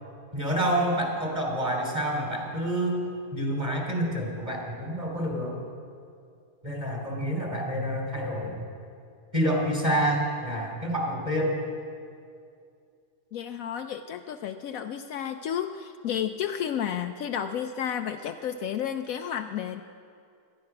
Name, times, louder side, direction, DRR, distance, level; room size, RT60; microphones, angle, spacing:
voice 1, 0.3-3.0 3.3-5.6 6.6-8.6 9.3-11.6, equal, 20° right, -1 dB, 3.1 m, -28 dB
voice 2, 13.3-19.8, left 9 dB, 70° left, 7 dB, 0.9 m, -32 dB
18.0 x 12.5 x 6.0 m, 2.4 s
omnidirectional pair, 1.6 m